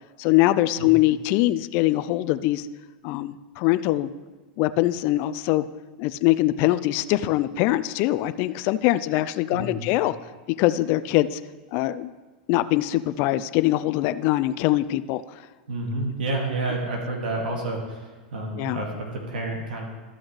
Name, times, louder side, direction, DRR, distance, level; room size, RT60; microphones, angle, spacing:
voice 1, 0.2-2.7 3.0-4.1 4.6-5.7 6.0-10.2 10.6-11.4 11.7-12.1 12.5-15.2 18.6-18.8, left 16 dB, 50° left, 13 dB, 0.3 m, -22 dB
voice 2, 9.5-9.9 15.7-19.8, right 2 dB, 85° right, 0 dB, 2.0 m, -29 dB
13.0 x 6.2 x 3.2 m, 1.3 s
hypercardioid pair, 120°, 5 cm